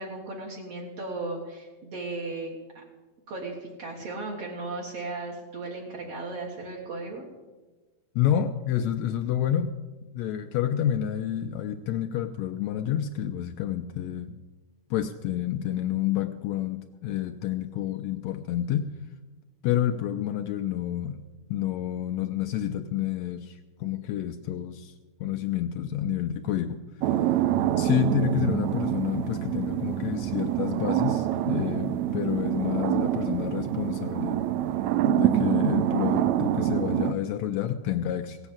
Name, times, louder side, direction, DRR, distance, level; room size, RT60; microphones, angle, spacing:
voice 1, 0.0-2.8 3.3-7.2, right 2 dB, 60° right, -1 dB, 2.4 m, -36 dB
voice 2, 8.2-9.7 10.2-14.4 14.9-18.9 19.6-21.2 21.5-24.9 25.2-26.8 27.8-34.4 35.0-38.4, left 10 dB, 75° left, 6 dB, 1.7 m, -29 dB
sound 1, 27.0-37.1, right 12 dB, 80° right, 1.9 m, -26 dB
17.0 x 8.1 x 7.2 m, 1.2 s
omnidirectional pair, 3.4 m